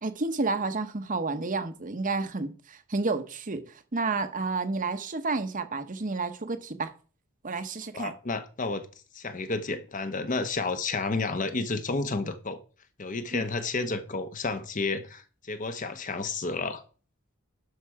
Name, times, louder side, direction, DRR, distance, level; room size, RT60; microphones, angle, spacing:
voice 1, 0.0-6.9 7.4-8.1 13.3-13.4, right 3 dB, 40° right, 1.0 m, -30 dB
voice 2, 7.9-8.8 9.1-12.6 13.0-16.8, left 3 dB, 40° left, 0.9 m, -31 dB
11.5 x 5.8 x 4.8 m
head